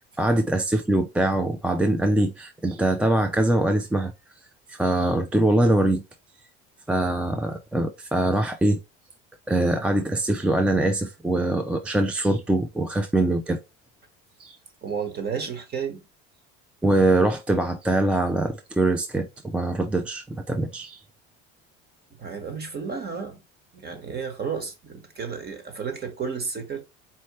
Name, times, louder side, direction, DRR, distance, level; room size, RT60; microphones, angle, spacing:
voice 1, 0.2-4.1 4.7-6.0 6.9-8.8 9.5-13.6 14.4-14.6 16.8-21.0, right 1 dB, 5° right, 0.3 m, -23 dB
voice 2, 14.8-16.0 22.2-23.4 23.7-26.8, right 6 dB, 35° right, 1.4 m, -32 dB
4.4 x 3.0 x 3.0 m
cardioid pair, 120°, 29 cm